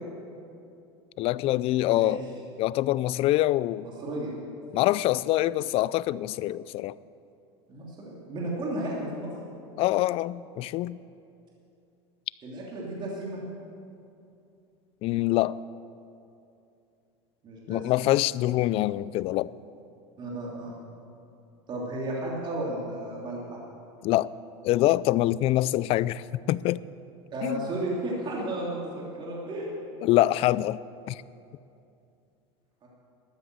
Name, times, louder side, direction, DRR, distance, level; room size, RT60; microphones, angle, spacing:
voice 1, 1.2-2.2 2.6-3.9 4.7-7.0 9.8-11.0 15.0-15.6 17.7-19.5 24.0-24.3 24.6-26.8 27.4-27.7 30.0-30.8 31.1-31.2, left 15 dB, 45° left, 20 dB, 0.4 m, -25 dB
voice 2, 1.7-2.2 4.0-4.3 7.7-9.3 12.4-13.4 17.4-18.1 20.2-20.7 21.7-23.6 27.3-29.7 32.8-32.9, right 1 dB, 35° right, -4 dB, 2.9 m, -33 dB
13.0 x 9.5 x 8.0 m, 2.6 s
supercardioid pair, 120°, 14 cm